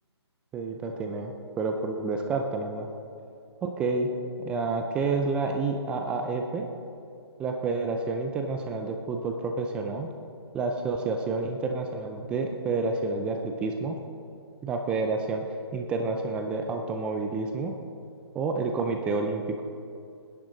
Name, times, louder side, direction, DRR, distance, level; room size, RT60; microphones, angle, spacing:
voice 1, 0.5-2.9 3.6-4.1 4.4-6.7 7.4-10.1 10.5-14.0 14.6-15.4 15.7-17.7 18.3-19.6, right 3 dB, 5° right, 4 dB, 0.4 m, -29 dB
25.5 x 10.5 x 3.9 m, 2.5 s
hypercardioid pair, 155°, 14 cm